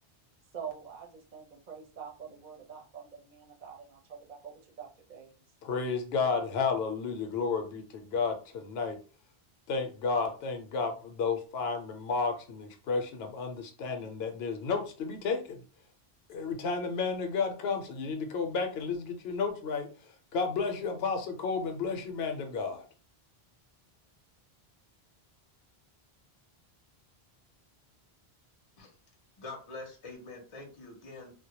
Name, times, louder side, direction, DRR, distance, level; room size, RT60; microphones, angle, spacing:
voice 1, 0.5-5.3, right 7 dB, 50° right, 0 dB, 0.7 m, -45 dB
voice 2, 5.6-9.0 9.7-15.6 16.3-22.8, left 4 dB, 75° left, 5 dB, 0.8 m, -32 dB
voice 3, 29.4-31.3, left 3 dB, 35° left, 1 dB, 0.6 m, -45 dB
2.1 x 2.1 x 2.8 m, 0.36 s
omnidirectional pair, 1.1 m